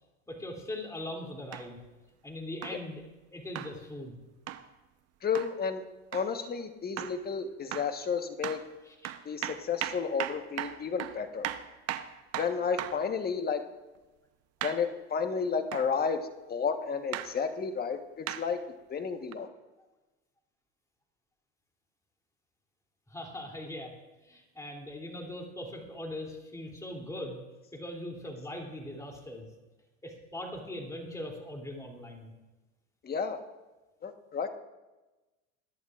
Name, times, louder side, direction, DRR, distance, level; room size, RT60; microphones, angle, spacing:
voice 1, 0.3-1.8 2.2-3.0 3.3-4.1 8.8-9.1 23.1-23.9 24.2-27.4 27.7-29.5 30.0-32.3, left 1 dB, 10° left, 1 dB, 2.9 m, -40 dB
sound 1, 1.5-1.7 2.6-2.8 3.5-3.7 4.5-4.7 5.3-5.5 6.1-6.3 7.0-7.2 7.7-8.0 8.4-8.6 9.0-13.1 14.6-14.8 15.7-15.9 17.1-17.3 18.3-18.5 19.3-19.4, right 12 dB, 45° right, 0.8 m, -37 dB
voice 2, 5.2-5.8 6.1-8.6 9.2-11.5 12.4-13.6 14.6-18.6 18.9-19.5 33.0-33.4 34.0-34.5, left 6 dB, 25° left, 7 dB, 1.2 m, -32 dB
21.5 x 11.0 x 2.5 m, 1.1 s
supercardioid pair, 95°, 34 cm